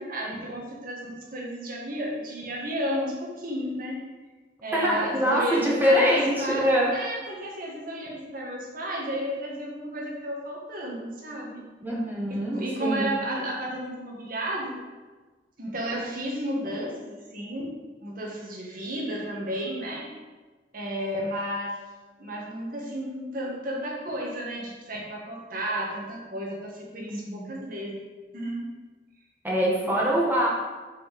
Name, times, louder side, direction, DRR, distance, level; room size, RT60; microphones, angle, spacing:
voice 1, 0.0-4.0 4.6-11.6 12.5-14.7 15.6-17.7 18.0-20.1 20.7-21.8 22.2-27.9 28.3-28.7, equal, 55° right, -2 dB, 1.9 m, -32 dB
voice 2, 4.7-7.0 11.8-13.1 27.1-27.6 29.4-30.5, equal, 10° right, -4 dB, 1.6 m, -24 dB
6.3 x 5.5 x 5.3 m, 1.3 s
head